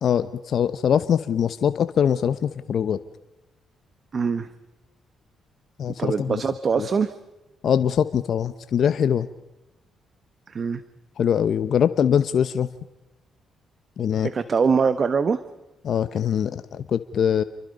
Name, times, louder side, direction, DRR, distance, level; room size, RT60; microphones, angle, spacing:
voice 1, 0.0-3.0 5.8-6.4 6.8-6.9 7.6-9.3 11.2-12.7 14.0-14.3 15.8-17.4, left 8 dB, 65° left, 12 dB, 0.9 m, -22 dB
voice 2, 4.1-4.5 6.0-7.1 10.5-10.8 14.2-15.4, right 5 dB, 50° right, 12 dB, 1.3 m, -23 dB
29.0 x 23.5 x 5.4 m, 1.0 s
supercardioid pair, 60°, 0 cm